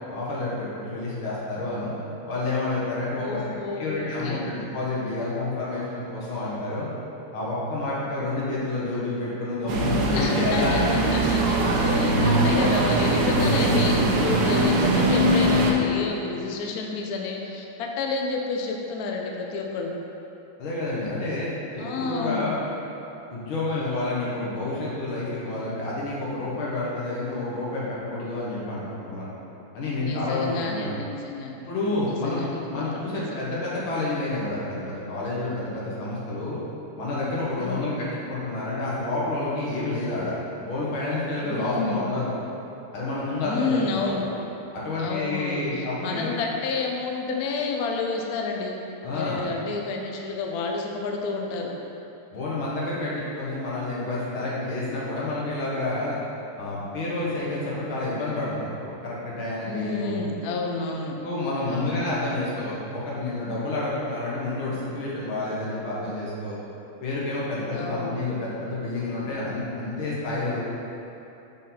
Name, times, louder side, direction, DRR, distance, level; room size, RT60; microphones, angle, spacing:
voice 1, 0.1-1.9 2.3-3.4 3.8-6.9 7.3-10.8 20.6-22.6 23.3-29.3 29.7-30.9 31.6-32.4 32.7-36.6 37.0-42.3 42.9-44.2 44.7-46.3 49.0-49.4 52.3-56.2 56.6-60.2 61.2-66.6 67.0-70.6, left 2 dB, 70° left, -7 dB, 2.1 m, -29 dB
voice 2, 3.2-4.4 10.1-19.9 21.8-22.5 30.0-31.5 32.0-33.4 37.6-37.9 41.4-42.0 43.4-44.2 45.0-48.8 49.1-51.7 59.6-61.2 61.7-62.0 67.7-68.1, left 4 dB, 90° left, 1 dB, 0.8 m, -30 dB
sound 1, 9.7-15.7, right 1 dB, 70° right, 0.9 m, -21 dB
6.2 x 3.9 x 4.2 m, 3.0 s
omnidirectional pair, 2.4 m